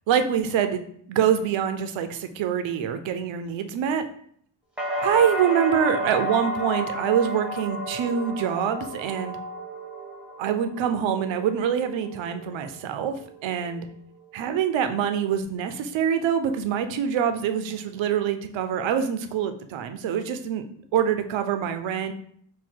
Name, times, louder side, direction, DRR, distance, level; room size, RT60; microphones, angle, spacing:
voice 1, 0.1-0.8 1.1-4.0 5.0-9.4 10.4-13.9 14.3-20.6 20.9-22.1, right 8 dB, 75° right, 8 dB, 0.6 m, -25 dB
sound 1, 4.8-12.7 13.0-13.7, equal, ahead, 0.7 m, -32 dB
3.7 x 2.2 x 4.5 m, 0.63 s
wide cardioid pair, 150°, 46 cm